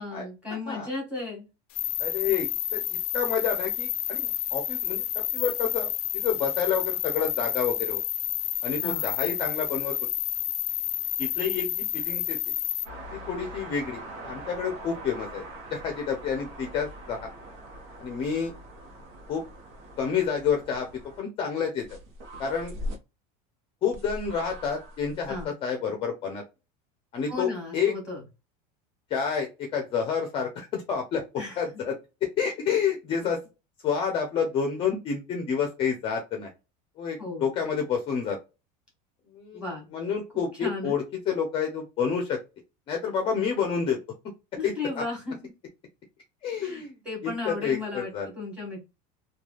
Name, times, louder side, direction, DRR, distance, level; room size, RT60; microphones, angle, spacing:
voice 1, 0.0-1.5 8.8-9.1 25.3-25.5 27.3-28.2 31.4-31.6 37.2-37.5 39.5-39.9 40.6-41.0 44.6-45.5 46.6-48.9, left 3 dB, 5° right, -2 dB, 1.5 m, -35 dB
sound 1, 1.7-12.8, left 13 dB, 75° left, 0.5 m, -30 dB
voice 2, 2.0-8.0 8.6-9.9 11.2-12.4 13.1-15.4 15.7-17.3 18.0-18.5 19.3-19.4 20.0-20.9 21.2-22.0 22.4-22.7 23.8-26.4 27.1-27.9 29.1-31.2 31.6-31.9 32.2-33.4 33.8-36.5 37.0-38.4 39.3-39.6 39.9-42.4 42.9-44.0 44.6-44.7 46.4-47.0 47.2-48.3, left 6 dB, 25° left, 2 dB, 0.6 m, -29 dB
sound 2, 12.8-21.2 21.8-23.0 23.9-25.4, equal, 65° right, 0.9 m, -41 dB
3.2 x 2.3 x 2.3 m, 0.27 s
cardioid pair, 165°, 19 cm